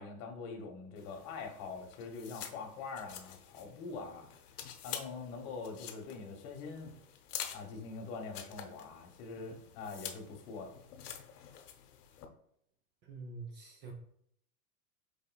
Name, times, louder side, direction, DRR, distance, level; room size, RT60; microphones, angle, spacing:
voice 1, 0.0-4.3 4.8-6.9 7.5-10.7, left 4 dB, 45° left, 3 dB, 1.2 m, -44 dB
sound 1, 1.0-12.3, left 9 dB, 80° left, 0.9 m, -48 dB
voice 2, 13.0-13.9, right 3 dB, 25° right, 1 dB, 0.5 m, -46 dB
5.4 x 4.4 x 2.3 m, 0.69 s
supercardioid pair, 135°, 46 cm